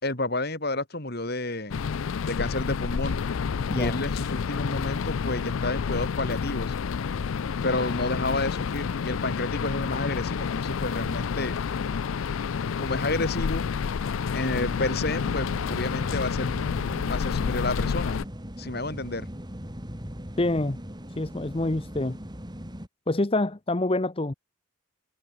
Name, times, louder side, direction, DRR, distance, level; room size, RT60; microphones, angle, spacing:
voice 1, 0.0-1.9 2.2-3.2 3.7-6.8 7.6-11.6 12.8-13.6 14.3-16.5 17.1-18.2 18.6-19.3, left 2 dB, 50° left, 4.5 m, -30 dB
sound 1, 1.7-18.2, left 6 dB, 75° left, 0.4 m, -29 dB
sound 2, 14.5-22.9, equal, 20° right, 3.9 m, -39 dB
voice 2, 20.4-20.8 21.2-22.2 23.1-24.3, left 2 dB, 25° left, 0.8 m, -26 dB
head